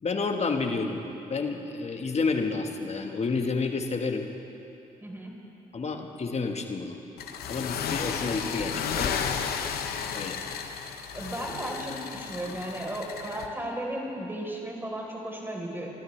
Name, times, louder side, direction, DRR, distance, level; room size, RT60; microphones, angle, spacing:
voice 1, 0.0-1.0 1.3-4.3 5.7-7.0 7.5-9.2 10.1-10.4 12.5-12.6, left 4 dB, 40° left, 4 dB, 1.5 m, -30 dB
voice 2, 5.0-5.3 11.1-15.9, right 1 dB, 15° right, -1 dB, 4.1 m, -35 dB
sound 1, 7.2-13.5, left 7 dB, 70° left, 0.9 m, -33 dB
27.0 x 12.5 x 3.4 m, 2.8 s
hypercardioid pair, 50°, 16 cm